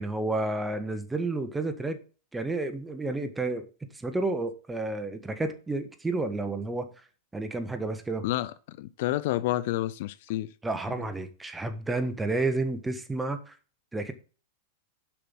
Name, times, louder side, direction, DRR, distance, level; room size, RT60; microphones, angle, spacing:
voice 1, 0.0-2.0 2.3-3.7 3.9-6.9 7.3-8.2 10.6-13.5 13.9-14.1, right 2 dB, 10° right, 1.3 m, -30 dB
voice 2, 8.2-10.5, left 15 dB, 60° left, 0.5 m, -29 dB
7.2 x 5.9 x 7.2 m
hypercardioid pair, 115°, 0 cm